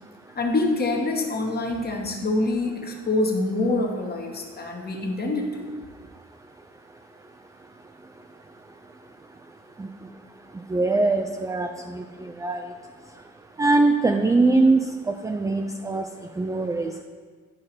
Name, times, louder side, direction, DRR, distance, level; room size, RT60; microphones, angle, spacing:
voice 1, 0.3-5.7, left 2 dB, 30° left, 2 dB, 1.3 m, -25 dB
voice 2, 10.7-12.6 13.6-16.1 16.4-16.9, right 3 dB, 10° right, 4 dB, 0.4 m, -22 dB
11.0 x 4.7 x 4.4 m, 1.6 s
cardioid pair, 90°, 30 cm